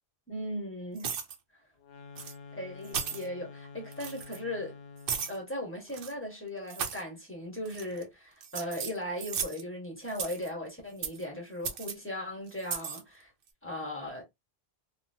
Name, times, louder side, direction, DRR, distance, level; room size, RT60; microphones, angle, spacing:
voice 1, 0.3-1.1 2.5-4.7 5.3-13.3 13.6-14.2, left 1 dB, 10° left, 1.2 m, -38 dB
sound 1, 1.0-1.4 2.2-2.3 2.8-3.3 3.9-4.4 5.1-5.4 5.9-6.1 6.7-7.0 7.7-8.0 8.4-9.6 10.1-10.5 11.0-11.2 11.6-11.9 12.6-13.0, right 7 dB, 65° right, 0.7 m, -36 dB
sound 2, 1.8-5.4, left 5 dB, 75° left, 0.8 m, -48 dB
2.9 x 2.3 x 2.6 m
omnidirectional pair, 1.0 m